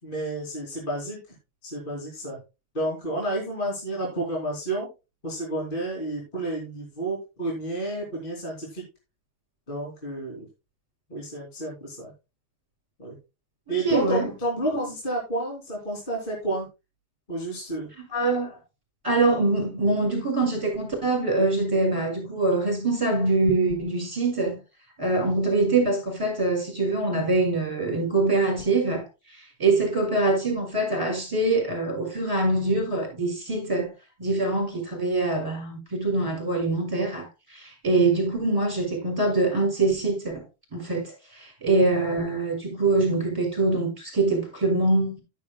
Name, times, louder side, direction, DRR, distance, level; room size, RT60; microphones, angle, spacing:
voice 1, 0.0-1.4 1.6-2.4 2.7-4.9 5.2-8.8 9.7-10.5 11.1-12.1 13.0-13.2 13.7-16.7 17.3-17.9, right 1 dB, 15° left, 2.6 m, -30 dB
voice 2, 13.7-14.3 18.1-18.6 19.0-24.6 25.0-33.9 34.2-40.4 40.7-45.2, right 3 dB, 5° right, 5.5 m, -24 dB
11.5 x 10.5 x 2.3 m
omnidirectional pair, 4.7 m